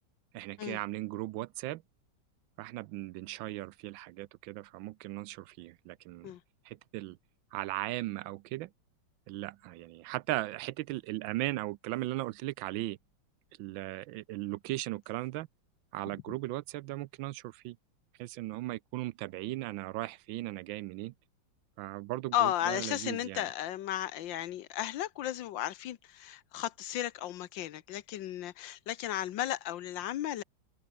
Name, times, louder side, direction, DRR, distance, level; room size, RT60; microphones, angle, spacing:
voice 1, 0.3-1.8 2.6-6.3 6.7-7.2 7.5-8.7 9.3-13.0 13.6-15.5 15.9-17.8 18.2-21.1 21.8-23.5, right 17 dB, 85° right, 1.3 m, -37 dB
voice 2, 22.3-30.4, left 12 dB, 75° left, 1.6 m, -34 dB
omnidirectional pair, 2.1 m